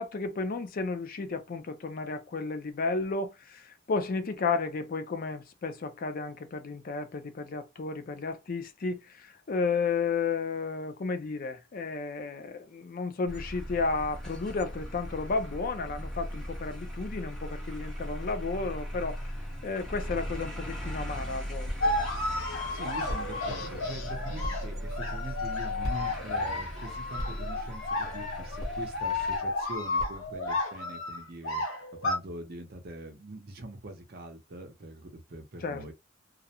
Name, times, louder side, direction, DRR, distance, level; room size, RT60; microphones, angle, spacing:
voice 1, 0.0-19.3 19.6-22.0 35.6-35.9, left 4 dB, 45° left, 0.4 m, -33 dB
sound 1, 13.3-29.4, equal, ahead, 0.8 m, -39 dB
sound 2, 21.8-32.2, left 2 dB, 85° left, 0.9 m, -32 dB
voice 2, 22.7-31.6 31.9-35.9, right 1 dB, 50° right, 0.6 m, -43 dB
sound 3, 27.8-30.6, equal, 20° right, 1.0 m, -43 dB
2.4 x 2.0 x 2.8 m
head